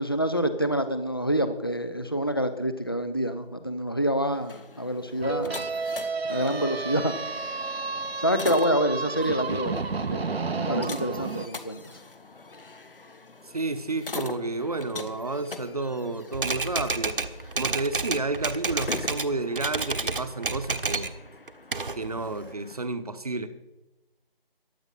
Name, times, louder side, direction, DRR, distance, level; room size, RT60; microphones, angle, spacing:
voice 1, 0.0-5.6 6.3-7.1 8.2-9.8 10.1-10.3 10.5-11.8, equal, 25° left, 10 dB, 0.6 m, -27 dB
sound 1, 4.3-22.8, left 3 dB, 65° left, 1.5 m, -43 dB
sound 2, 5.2-11.5, right 4 dB, 80° right, 0.9 m, -31 dB
voice 2, 13.4-17.2 17.5-21.1 21.9-23.5, right 3 dB, 40° right, 11 dB, 1.0 m, -31 dB
Typewriter, 16.3-19.3 19.6-21.2 21.5-22.5, right 3 dB, 60° right, 1.2 m, -30 dB
15.5 x 10.5 x 5.4 m, 1.0 s
figure-of-eight pair, 170°, 30 cm